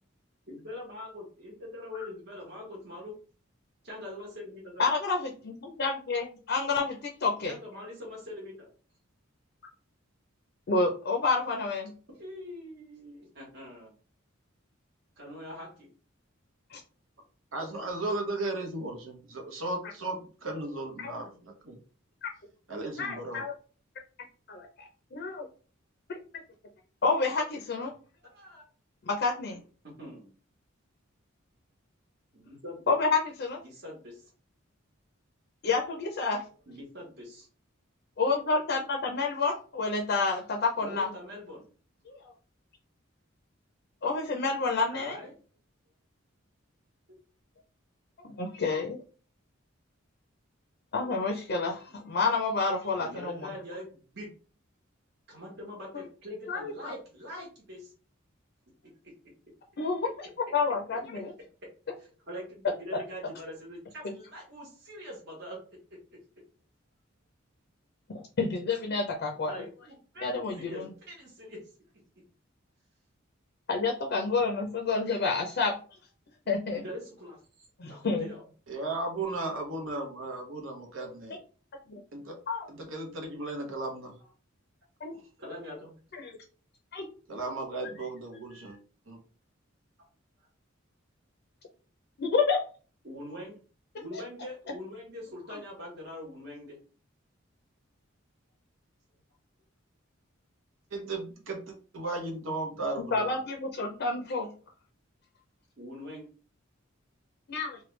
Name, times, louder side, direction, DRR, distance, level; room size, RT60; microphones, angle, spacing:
voice 1, 0.5-3.1 3.8-4.8 7.4-8.7 12.2-13.9 15.2-15.9 23.3-23.4 28.2-28.6 29.8-30.3 32.3-32.9 33.6-34.2 36.7-37.5 40.8-41.7 44.9-45.3 51.9-52.0 53.0-54.3 55.3-57.9 61.1-61.2 61.6-61.7 62.0-65.6 69.5-71.6 76.7-78.4 85.4-85.9 93.0-93.6 94.0-96.8 105.8-106.3, left 1 dB, 55° right, -3 dB, 1.1 m, -43 dB
voice 2, 4.8-7.5 10.7-11.9 16.7-16.8 21.0-21.2 22.2-22.3 23.0-23.5 24.5-25.5 26.1-26.2 27.0-27.9 29.0-29.6 32.9-33.6 35.6-36.4 38.2-41.1 42.1-42.3 44.0-45.2 48.2-49.0 50.9-53.4 56.5-56.9 59.8-60.1 60.5-61.3 62.9-63.0 68.1-69.5 70.2-70.9 73.7-75.8 76.5-76.8 77.8-78.3 81.9-82.0 82.5-82.7 85.0-85.1 86.2-86.3 86.9-87.1 88.6-88.7 92.2-92.6 94.1-94.2 103.1-104.5 107.5-107.8, left 4 dB, 50° left, 3 dB, 0.5 m, -29 dB
voice 3, 17.5-21.8 22.7-23.4 78.7-81.4 82.1-82.4 82.7-84.1 87.3-88.8 89.1-89.2 100.9-103.3, right 2 dB, 75° right, 3 dB, 0.9 m, -35 dB
3.1 x 2.2 x 3.1 m, 0.38 s
head